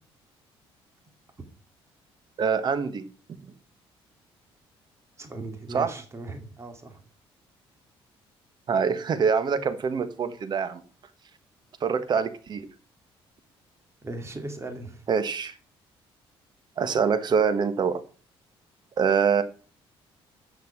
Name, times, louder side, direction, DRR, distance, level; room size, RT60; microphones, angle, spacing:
voice 1, 2.4-3.0 5.7-5.9 8.7-10.8 11.8-12.7 15.1-15.5 16.8-18.0 19.0-19.4, right 6 dB, 45° right, 1.5 m, -24 dB
voice 2, 5.2-7.0 14.0-15.0, right 2 dB, 25° right, 2.6 m, -38 dB
14.5 x 6.0 x 6.0 m
cardioid pair, 105°, 10 cm